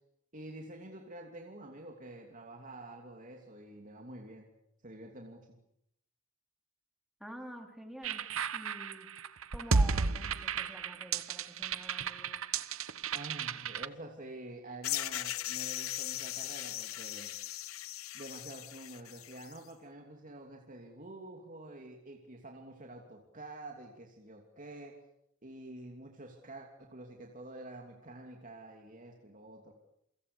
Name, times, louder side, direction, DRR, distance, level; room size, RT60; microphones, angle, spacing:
voice 1, 0.3-4.5 4.8-5.6 13.1-17.3 18.1-25.0 25.4-29.7, right 1 dB, 40° right, 1 dB, 2.9 m, -48 dB
voice 2, 7.2-8.2 8.5-9.1 9.5-12.4, equal, ahead, 3 dB, 4.2 m, -48 dB
sound 1, 8.0-13.9, right 4 dB, 75° right, 1.0 m, -33 dB
sound 2, 14.8-19.6, left 14 dB, 80° left, 1.0 m, -39 dB
29.0 x 24.5 x 7.0 m, 0.78 s
head